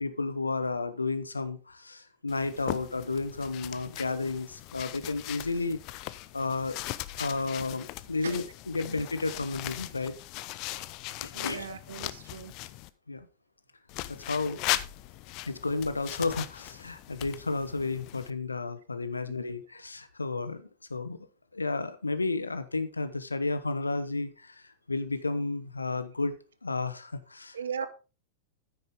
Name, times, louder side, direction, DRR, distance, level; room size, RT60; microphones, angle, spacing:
voice 1, 0.0-5.8 6.3-6.8 7.1-10.1 11.2-11.7 13.1-13.3 14.1-14.6 15.5-21.2 21.5-26.4 26.6-27.6, left 3 dB, 80° left, 13 dB, 0.8 m, -32 dB
sound 1, 2.3-12.9 13.9-18.3, left 17 dB, 40° left, 0.5 m, -39 dB
voice 2, 11.3-12.5 27.5-27.9, right 7 dB, 65° right, 14 dB, 0.8 m, -38 dB
9.4 x 9.1 x 3.6 m, 0.32 s
figure-of-eight pair, 90°, 0 cm